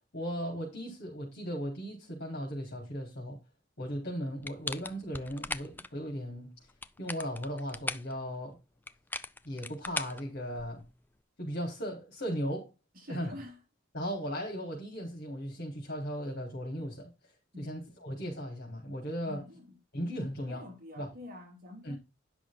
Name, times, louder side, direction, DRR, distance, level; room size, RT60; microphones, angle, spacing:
voice 1, 0.1-3.4 3.8-6.5 7.0-8.6 9.4-10.8 11.4-12.7 13.1-13.3 13.9-19.4 19.9-20.6 21.0-21.1 21.8-22.0, equal, 55° left, 3.9 m, -37 dB
sound 1, 4.4-5.9 6.7-8.1 8.9-10.9, left 3 dB, 10° left, 0.4 m, -39 dB
voice 2, 12.9-13.6 17.5-18.1 19.3-19.8 20.5-22.0, left 2 dB, 45° right, 2.5 m, -47 dB
10.0 x 6.1 x 3.7 m
head